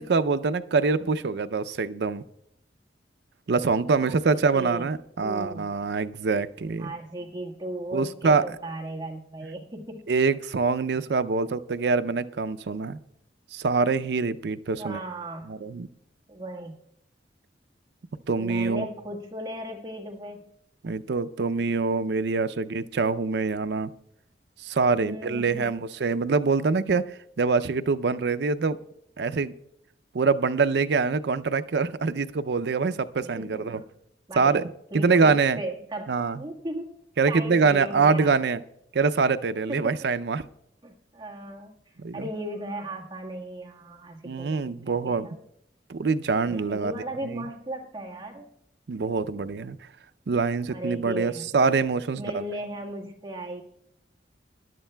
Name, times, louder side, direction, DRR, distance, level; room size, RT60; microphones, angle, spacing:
voice 1, 0.0-2.2 3.5-6.9 7.9-8.4 10.1-13.0 13.5-15.0 15.5-15.9 18.3-18.9 20.8-23.9 24.6-28.8 29.2-29.5 30.1-33.8 34.4-34.7 34.9-35.6 36.1-36.4 37.2-38.6 38.9-40.5 42.0-42.2 44.2-45.3 45.9-46.9 47.3-47.5 48.9-49.8 50.3-52.4, right 4 dB, 70° right, 12 dB, 0.5 m, -24 dB
voice 2, 4.0-4.9 5.2-5.8 6.8-10.1 14.8-15.5 16.3-16.8 18.4-20.5 25.0-25.7 33.2-33.9 34.3-34.6 34.9-37.0 37.3-38.5 39.7-39.9 40.8-41.7 42.1-45.4 46.4-48.5 50.7-51.5 52.2-53.6, right 1 dB, 25° right, 0 dB, 1.5 m, -36 dB
20.0 x 11.5 x 2.2 m, 0.74 s
head